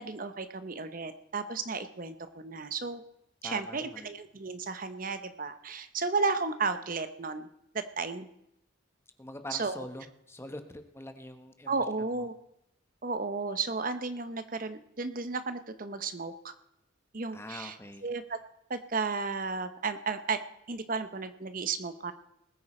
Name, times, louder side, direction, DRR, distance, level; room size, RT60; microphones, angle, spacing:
voice 1, 0.0-3.0 3.4-7.5 8.0-8.3 9.5-9.8 11.7-12.3 13.0-16.5 17.1-17.7 18.0-18.4 18.7-20.4 20.7-22.1, right 4 dB, 45° right, 11 dB, 0.8 m, -33 dB
voice 2, 3.4-4.1 9.2-12.3 17.3-18.1, left 1 dB, 15° left, 8 dB, 1.0 m, -44 dB
20.5 x 9.3 x 4.3 m, 0.79 s
head